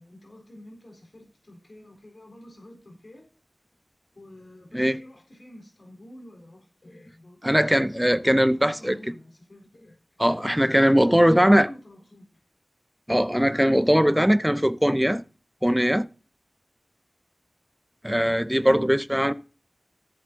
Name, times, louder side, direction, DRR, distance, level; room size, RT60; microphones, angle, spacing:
voice 1, 0.0-3.3 4.2-10.2 11.0-12.3, left 1 dB, 60° left, 3.8 m, -49 dB
voice 2, 7.4-9.0 10.2-11.7 13.1-15.2 15.6-16.1 18.0-19.3, equal, 5° right, 0.8 m, -20 dB
14.0 x 7.5 x 3.8 m
wide cardioid pair, 45°, 0 cm